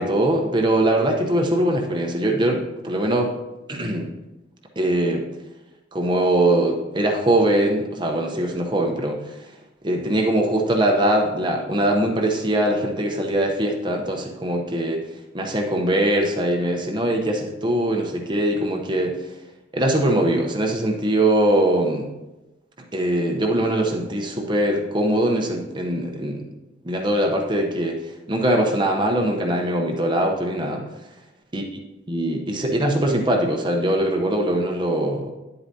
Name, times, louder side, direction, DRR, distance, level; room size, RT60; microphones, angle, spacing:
voice 1, 0.0-3.3 3.7-4.1 4.8-5.3 5.9-9.2 9.8-15.0 15.3-19.2 19.7-22.1 22.9-26.5 26.8-28.0 28.3-30.8 31.5-31.6 32.1-35.3, right 1 dB, 25° right, 1 dB, 0.8 m, -22 dB
10.5 x 7.9 x 2.8 m, 1.0 s
head